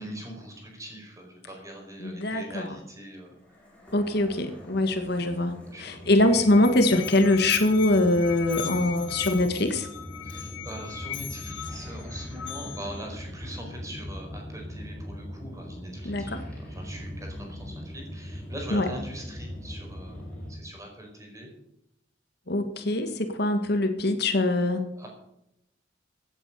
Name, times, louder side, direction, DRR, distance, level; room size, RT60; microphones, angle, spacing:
voice 1, 0.0-3.4 4.0-4.3 5.5-6.1 10.2-21.5 24.9-25.1, right 1 dB, 15° right, 1 dB, 4.7 m, -42 dB
voice 2, 2.0-2.7 3.9-5.5 5.8-9.9 16.0-16.3 18.7-18.9 22.5-24.8, left 2 dB, 55° left, 7 dB, 1.6 m, -23 dB
sound 1, 3.4-20.6, equal, 5° left, 4.2 m, -41 dB
Musical instrument, 6.0-13.0, left 10 dB, 75° left, 1.5 m, -38 dB
16.5 x 8.6 x 6.7 m, 0.83 s
head